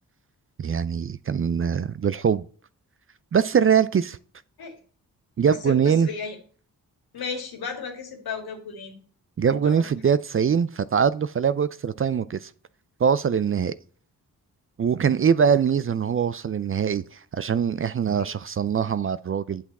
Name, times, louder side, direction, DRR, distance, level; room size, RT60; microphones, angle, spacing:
voice 1, 0.6-2.4 3.3-4.2 5.4-6.1 9.4-12.5 13.0-13.7 14.8-19.6, right 7 dB, 35° right, 0.4 m, -23 dB
voice 2, 5.4-6.4 7.1-9.0 9.5-9.9 18.2-18.3, left 5 dB, 70° left, 2.0 m, -34 dB
8.2 x 5.9 x 4.1 m
supercardioid pair, 50°, 38 cm